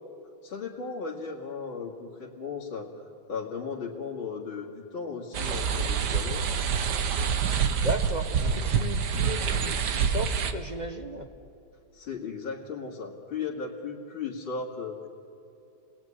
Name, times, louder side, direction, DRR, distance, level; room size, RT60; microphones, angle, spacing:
voice 1, 0.4-2.9 3.3-6.4 11.9-15.1, left 5 dB, 70° left, -5 dB, 3.0 m, -36 dB
sound 1, 5.3-10.5, right 6 dB, 60° right, 1.6 m, -27 dB
voice 2, 7.7-11.3, right 1 dB, 25° right, 6 dB, 1.1 m, -35 dB
29.0 x 20.0 x 10.0 m, 2.7 s
omnidirectional pair, 2.2 m